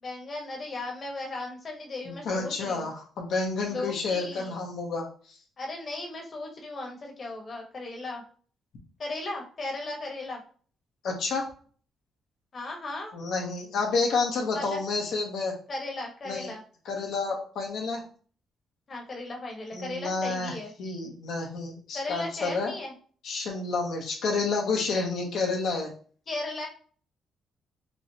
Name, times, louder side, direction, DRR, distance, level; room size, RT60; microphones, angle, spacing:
voice 1, 0.0-2.9 3.6-4.5 5.6-8.2 9.0-10.4 12.5-13.2 14.5-14.8 15.7-16.6 18.9-20.7 21.9-22.9 26.3-26.7, left 2 dB, 45° left, 1 dB, 1.1 m, -36 dB
voice 2, 2.1-5.4 11.0-11.5 13.1-15.5 16.3-16.5 16.9-18.0 19.7-22.7 23.2-25.9, left 4 dB, 75° left, 1 dB, 0.8 m, -30 dB
4.2 x 2.1 x 2.7 m, 0.43 s
cardioid pair, 90°, 0 cm